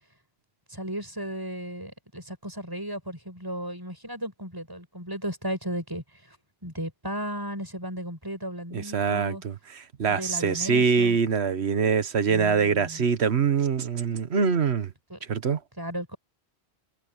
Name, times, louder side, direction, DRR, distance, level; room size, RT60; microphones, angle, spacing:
voice 1, 0.7-6.4 6.6-9.4 10.0-11.2 12.3-13.0 15.1-15.2 15.8-16.2, equal, 20° right, 8.0 m, -35 dB
voice 2, 8.7-14.9 15.3-15.6, right 6 dB, 75° right, 1.4 m, -24 dB
omnidirectional pair, 1.1 m